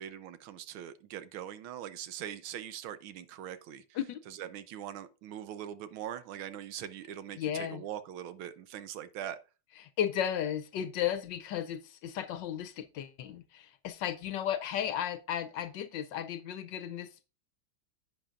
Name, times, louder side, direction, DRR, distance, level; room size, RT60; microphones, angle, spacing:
voice 1, 0.0-4.0 4.3-9.4, right 10 dB, 90° right, 1.6 m, -42 dB
voice 2, 7.4-7.8 9.8-17.2, left 10 dB, 70° left, 1.2 m, -34 dB
10.5 x 8.7 x 2.5 m
omnidirectional pair, 2.2 m